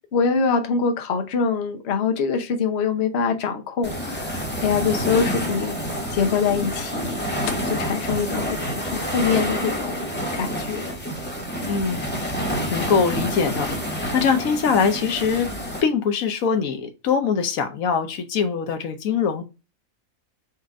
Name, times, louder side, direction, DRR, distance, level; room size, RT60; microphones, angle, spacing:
voice 1, 0.1-5.8 6.1-7.2 7.7-10.1 10.3-10.9, left 5 dB, 55° left, 1.0 m, -24 dB
sound 1, 3.8-15.8, equal, 10° left, 1.2 m, -28 dB
voice 2, 11.7-12.1 12.3-12.4 12.7-13.7 14.1-15.5 15.8-19.4, left 6 dB, 75° left, 1.2 m, -22 dB
4.3 x 2.5 x 4.7 m
omnidirectional pair, 1.4 m